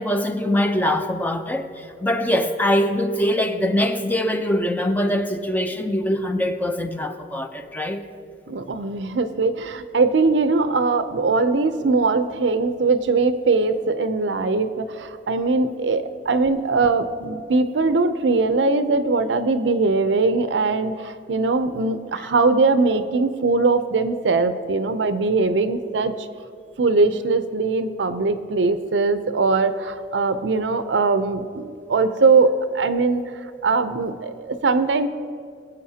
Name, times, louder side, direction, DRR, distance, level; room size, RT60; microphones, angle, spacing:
voice 1, 0.0-8.0, left 1 dB, 10° left, 0.5 m, -23 dB
voice 2, 8.5-26.3 26.8-33.2 33.6-35.1, right 3 dB, 80° right, 0.6 m, -21 dB
22.5 x 7.8 x 2.8 m
head